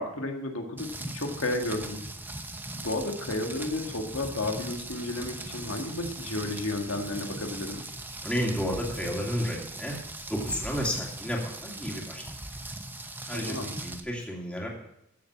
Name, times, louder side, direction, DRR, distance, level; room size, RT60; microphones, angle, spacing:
voice 1, 0.0-2.0 2.8-7.8 13.3-13.7, left 2 dB, 80° left, 3 dB, 1.9 m, -32 dB
Rain, 0.8-14.0, right 2 dB, 10° right, 0.9 m, -39 dB
voice 2, 8.2-9.9 10.3-12.2 13.0-14.7, equal, 5° left, -2 dB, 2.7 m, -32 dB
15.0 x 7.3 x 5.8 m, 0.79 s
head